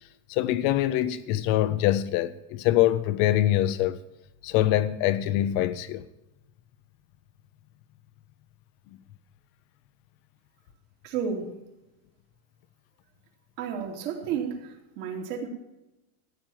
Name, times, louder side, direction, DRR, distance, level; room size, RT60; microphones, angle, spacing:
voice 1, 0.3-4.0 4.4-6.1, left 13 dB, 30° left, 0.4 m, -24 dB
voice 2, 11.0-11.6 13.6-15.5, right 7 dB, 55° right, 3.0 m, -32 dB
14.5 x 9.1 x 7.2 m
supercardioid pair, 175°, 44 cm